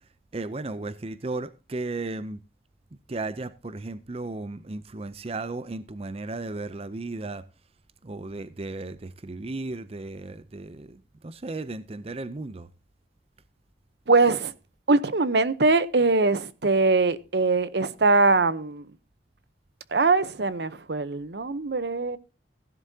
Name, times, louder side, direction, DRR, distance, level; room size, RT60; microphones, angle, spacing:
voice 1, 0.3-2.4 3.1-7.4 8.0-12.7, right 2 dB, 35° right, 0.6 m, -35 dB
voice 2, 14.1-14.5 14.9-18.8 19.9-22.2, right 3 dB, 70° right, 0.9 m, -22 dB
16.5 x 11.0 x 2.8 m
head